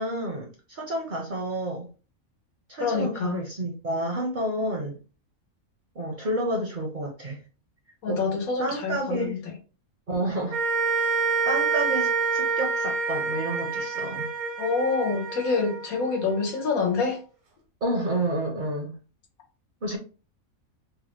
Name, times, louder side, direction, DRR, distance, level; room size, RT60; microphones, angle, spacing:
voice 1, 0.0-1.9 2.7-5.0 5.9-7.4 8.1-8.2 8.6-9.3 10.1-10.6 11.5-14.3 17.8-18.9 19.8-20.0, right 1 dB, 50° right, 0.6 m, -30 dB
voice 2, 2.8-3.4 8.0-9.5 14.6-17.2, left 4 dB, 85° left, 1.4 m, -26 dB
sound 1, 10.5-16.9, right 4 dB, 80° right, 1.3 m, -27 dB
3.4 x 2.1 x 3.0 m
omnidirectional pair, 1.5 m